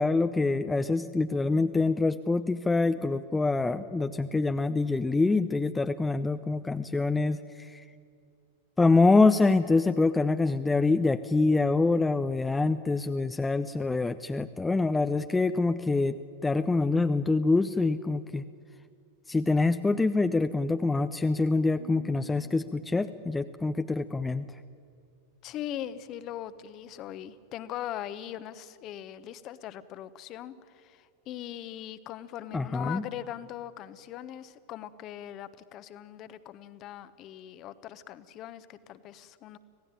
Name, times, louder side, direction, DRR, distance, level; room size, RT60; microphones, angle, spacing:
voice 1, 0.0-7.8 8.8-16.2 16.4-18.4 19.3-24.5 32.5-33.0, left 3 dB, 10° left, 10 dB, 0.6 m, -25 dB
sound 1, 21.8-24.7, right 6 dB, 65° right, 4.0 m, -51 dB
voice 2, 25.4-39.6, left 11 dB, 35° left, 14 dB, 1.1 m, -40 dB
26.0 x 17.0 x 9.1 m, 2.4 s
figure-of-eight pair, 90°, 0 cm